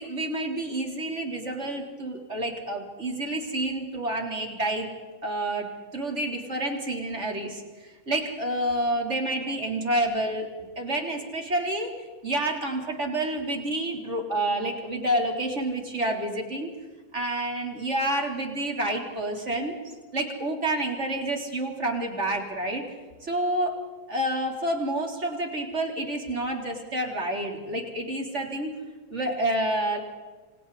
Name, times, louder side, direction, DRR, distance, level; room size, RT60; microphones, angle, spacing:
voice 1, 0.0-4.9 5.2-10.5 10.8-12.0 12.2-16.7 17.1-19.8 20.1-22.8 23.2-23.8 24.1-28.8 29.1-30.0, right 1 dB, 25° right, 1 dB, 3.8 m, -29 dB
28.5 x 25.5 x 4.2 m, 1.3 s
omnidirectional pair, 3.3 m